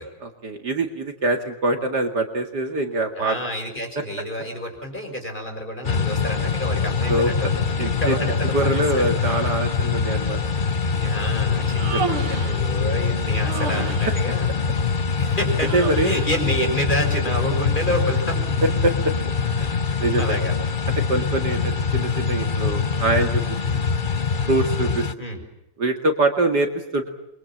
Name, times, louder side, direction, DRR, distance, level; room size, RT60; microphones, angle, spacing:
voice 1, 0.2-3.4 7.1-7.5 7.8-8.2 8.5-10.4 11.8-12.1 15.7-16.2 18.6-18.9 19.5-20.4 21.1-23.4 23.7-23.8 24.5-25.0 25.8-27.1, right 2 dB, 50° right, 5 dB, 2.7 m, -24 dB
voice 2, 3.2-9.2 11.0-14.5 15.2-15.7 16.0-18.6 19.9-20.5 25.2-25.4, equal, 20° left, 4 dB, 6.4 m, -29 dB
sound 1, 5.8-25.1, left 5 dB, 40° left, 0.7 m, -24 dB
Human voice, 11.6-12.6 13.4-14.2 15.6-16.3, right 5 dB, 90° right, 2.5 m, -31 dB
28.0 x 24.0 x 7.4 m, 0.89 s
omnidirectional pair, 2.3 m